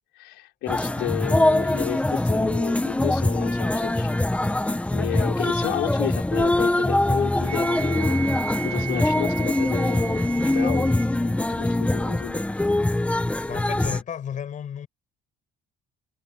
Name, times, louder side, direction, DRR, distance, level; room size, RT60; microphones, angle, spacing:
voice 1, 0.2-4.2 4.9-8.2 8.6-10.3 10.5-12.4, left 17 dB, 85° left, 5.6 m, -32 dB
sound 1, 0.7-14.0, left 1 dB, 10° left, 1.8 m, -23 dB
Wind instrument woodwind instrument, 7.4-11.1, right 9 dB, 45° right, 5.1 m, -35 dB
voice 2, 13.4-14.9, left 8 dB, 50° left, 5.7 m, -33 dB
cardioid pair, 110°, 17 cm